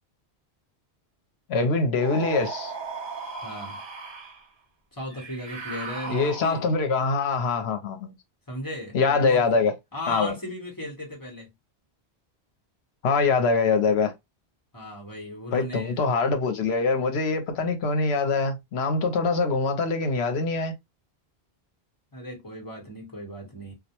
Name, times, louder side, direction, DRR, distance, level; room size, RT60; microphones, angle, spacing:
voice 1, 1.5-2.7 6.1-8.2 8.9-9.7 10.1-10.4 13.0-14.1 15.5-20.7, left 4 dB, 80° left, 0.9 m, -24 dB
sound 1, 2.0-4.4 5.1-6.8, right 4 dB, 35° right, 0.5 m, -37 dB
voice 2, 3.4-3.8 4.9-6.7 8.5-9.5 9.9-11.5 14.7-16.1 22.1-23.7, left 1 dB, 20° left, 0.9 m, -36 dB
2.2 x 2.1 x 2.7 m
omnidirectional pair, 1.1 m